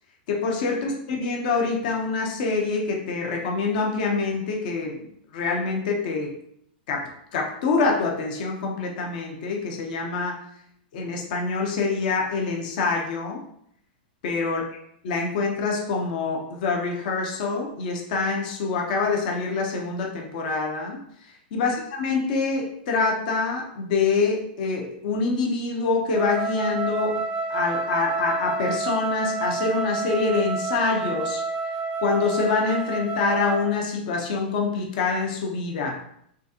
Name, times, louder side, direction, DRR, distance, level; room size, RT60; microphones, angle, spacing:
voice 1, 0.3-5.1 5.3-6.3 6.9-10.4 10.9-13.4 14.2-14.6 15.0-21.0 21.5-27.2 27.5-31.4 32.0-36.0, left 4 dB, 55° left, 0 dB, 0.9 m, -25 dB
Wind instrument woodwind instrument, 26.1-33.8, right 4 dB, 15° right, 0.5 m, -29 dB
6.1 x 2.5 x 2.9 m, 0.71 s
hypercardioid pair, 135°, 5 cm